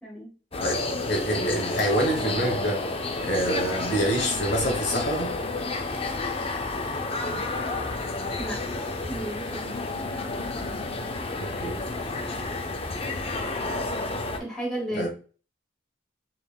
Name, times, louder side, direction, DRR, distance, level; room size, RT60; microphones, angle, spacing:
sound 1, 0.5-14.4, left 2 dB, 30° left, 0.5 m, -30 dB
voice 1, 0.6-2.8 3.2-5.3 11.4-11.8 14.9-15.1, right 1 dB, 60° left, 0 dB, 1.2 m, -27 dB
voice 2, 8.4-8.7 9.1-9.8 14.3-15.1, right 1 dB, ahead, -5 dB, 1.7 m, -33 dB
3.9 x 3.5 x 2.3 m, 0.37 s
head